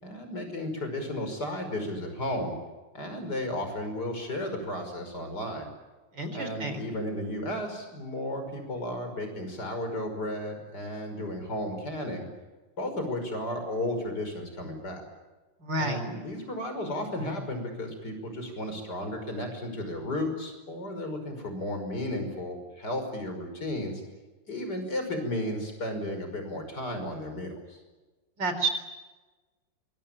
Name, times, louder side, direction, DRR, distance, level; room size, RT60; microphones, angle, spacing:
voice 1, 0.0-2.6 2.9-5.7 6.3-12.3 12.8-15.0 15.8-24.0 24.5-27.8, left 1 dB, 60° left, 6 dB, 6.0 m, -34 dB
voice 2, 6.1-6.8 15.6-16.0 28.4-28.7, right 3 dB, 70° right, 8 dB, 4.6 m, -29 dB
25.5 x 22.5 x 8.8 m, 1.2 s
omnidirectional pair, 2.0 m